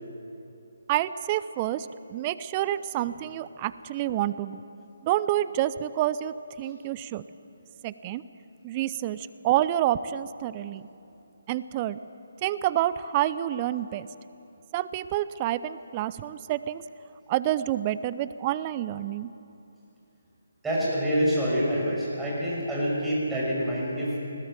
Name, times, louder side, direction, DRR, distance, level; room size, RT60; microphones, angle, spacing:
voice 1, 0.9-4.6 5.0-7.2 7.8-8.2 8.6-10.8 11.5-12.0 12.4-14.1 14.7-16.8 17.3-19.3, right 13 dB, 25° right, 16 dB, 0.5 m, -28 dB
voice 2, 20.6-24.2, equal, 5° right, -7 dB, 6.1 m, -26 dB
20.5 x 17.0 x 7.6 m, 2.7 s
figure-of-eight pair, 145°, 0 cm